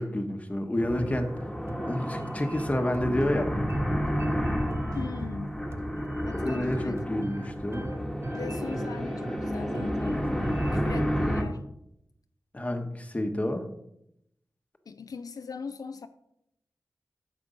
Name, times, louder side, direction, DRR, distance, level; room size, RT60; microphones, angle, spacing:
voice 1, 0.0-1.4 1.9-3.5 6.3-7.9 10.0-10.1 10.4-10.7 12.5-13.7, left 1 dB, 20° left, 1.2 m, -30 dB
sound 1, 0.8-11.4, equal, 5° left, 1.6 m, -30 dB
sound 2, 0.9-10.8, right 2 dB, 45° right, 0.6 m, -42 dB
sound 3, 3.2-4.3 4.9-6.0 6.6-7.7 8.3-8.4, right 1 dB, 80° right, 4.5 m, -53 dB
voice 2, 4.9-5.6 6.3-7.1 8.3-10.3 10.7-11.6 14.9-16.1, left 5 dB, 75° left, 0.5 m, -40 dB
9.6 x 7.5 x 5.2 m
wide cardioid pair, 95°, 6 cm